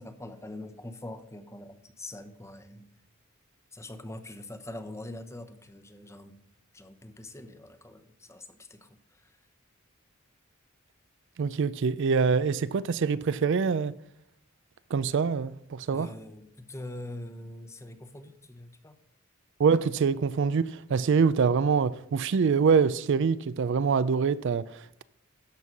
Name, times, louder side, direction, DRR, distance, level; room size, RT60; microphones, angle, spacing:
voice 1, 0.0-2.9 3.7-6.4 6.7-9.4 15.9-18.9, left 1 dB, 15° left, 0.9 m, -43 dB
voice 2, 11.4-13.9 14.9-16.1 19.6-25.0, right 5 dB, 60° right, 0.4 m, -25 dB
13.0 x 5.5 x 5.9 m
head